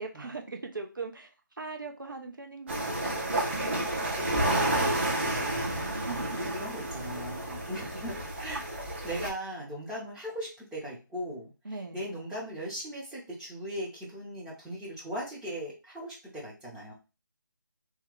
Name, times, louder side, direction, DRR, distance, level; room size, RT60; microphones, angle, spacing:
voice 1, 0.0-3.3 5.8-6.5 11.6-12.0, right 3 dB, 75° right, 3 dB, 0.9 m, -40 dB
sound 1, 2.7-9.3, right 1 dB, 35° right, 1.0 m, -30 dB
voice 2, 4.3-11.5 11.9-16.9, right 1 dB, 5° right, -6 dB, 0.6 m, -39 dB
2.9 x 2.3 x 3.7 m, 0.30 s
figure-of-eight pair, 155°, 11 cm